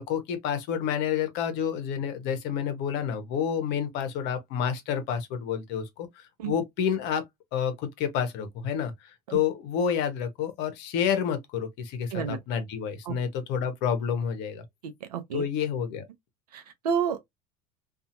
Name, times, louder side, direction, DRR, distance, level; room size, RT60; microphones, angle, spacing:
voice 1, 0.0-7.2 7.5-8.9 9.3-14.6 15.3-16.0, left 8 dB, 60° left, 0.9 m, -29 dB
voice 2, 14.8-15.4 16.5-17.2, right 7 dB, 85° right, 0.6 m, -30 dB
2.7 x 2.4 x 2.6 m
hypercardioid pair, 80°, 20 cm